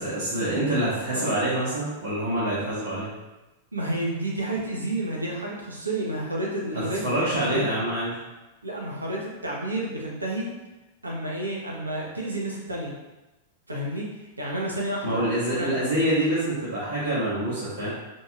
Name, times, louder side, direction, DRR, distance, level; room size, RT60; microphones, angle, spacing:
voice 1, 0.0-3.1 6.7-8.1 15.0-17.9, right 1 dB, 55° right, -11 dB, 1.3 m, -26 dB
voice 2, 3.7-7.6 8.6-10.4 11.0-12.9 13.7-14.0 14.4-15.2 15.5-15.8, right 1 dB, 85° right, -3 dB, 0.8 m, -30 dB
3.9 x 3.0 x 2.3 m, 1.1 s
figure-of-eight pair, 95°, 0 cm